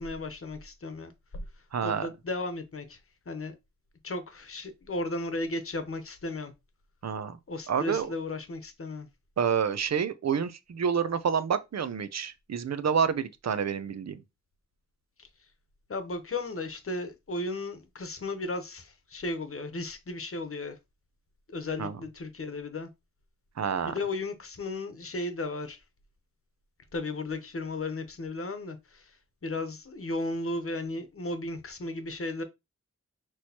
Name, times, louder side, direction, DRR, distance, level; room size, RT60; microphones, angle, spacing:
voice 1, 0.0-1.4 1.8-3.0 3.3-3.5 4.0-6.5 7.5-9.1 15.2-15.3 15.9-20.8 21.5-22.9 23.9-25.8 26.9-32.4, left 2 dB, 50° left, 0.9 m, -35 dB
voice 2, 1.7-2.1 7.0-7.4 7.7-8.1 9.4-14.2 21.8-22.0 23.6-23.9, right 7 dB, 60° right, 0.5 m, -28 dB
6.0 x 3.0 x 2.8 m
wide cardioid pair, 85°, 30 cm